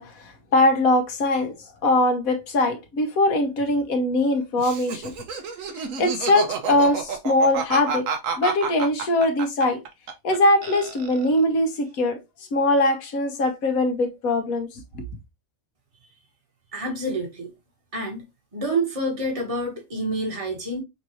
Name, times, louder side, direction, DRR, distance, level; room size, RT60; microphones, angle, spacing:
voice 1, 0.0-1.6 1.8-5.1 6.0-8.1 8.4-9.8 10.2-12.2 12.5-14.7 14.9-15.0, left 1 dB, 85° left, 1.5 m, -21 dB
Laughter, 4.6-10.4 10.6-11.4, right 6 dB, 70° right, 1.3 m, -30 dB
voice 2, 16.7-17.5 17.9-18.2 18.5-20.8, right 1 dB, 25° right, 1.5 m, -27 dB
5.9 x 2.7 x 3.0 m
omnidirectional pair, 1.4 m